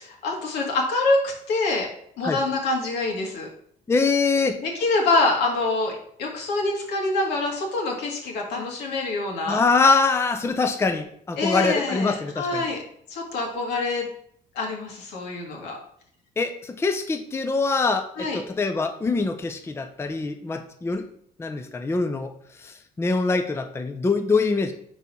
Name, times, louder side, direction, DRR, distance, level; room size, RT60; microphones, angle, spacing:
voice 1, 0.0-1.9 2.2-3.5 4.6-9.6 11.4-12.8 13.1-14.1 14.6-15.8 18.2-18.4, left 3 dB, 80° left, 0 dB, 1.9 m, -25 dB
voice 2, 3.9-4.6 9.5-12.6 16.4-21.0 21.4-22.3 22.6-24.7, left 4 dB, 15° left, 7 dB, 0.5 m, -24 dB
4.6 x 4.1 x 5.5 m, 0.65 s
cardioid pair, 110°, 17 cm